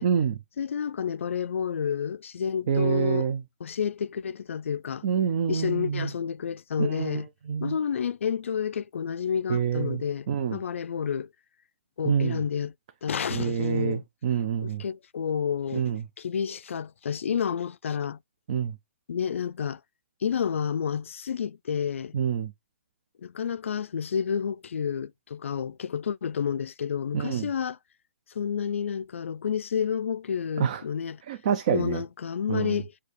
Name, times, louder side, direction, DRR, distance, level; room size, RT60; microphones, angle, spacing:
voice 1, 0.0-0.4 2.7-3.4 5.0-6.1 6.8-7.8 9.5-10.6 12.0-12.4 13.3-14.8 15.7-16.0 18.5-18.7 22.1-22.5 27.1-27.5 30.6-30.8 31.3-32.0 32.5-32.8, right 7 dB, 30° right, 0.4 m, -27 dB
voice 2, 0.6-3.3 3.6-5.0 5.5-7.3 7.6-11.3 12.0-12.7 13.0-14.0 14.6-15.8 16.2-18.2 19.1-19.8 20.2-22.1 23.2-27.8 28.3-31.2 31.7-32.9, left 7 dB, 75° left, 0.4 m, -30 dB
8.2 x 2.8 x 4.7 m
hypercardioid pair, 175°, 7 cm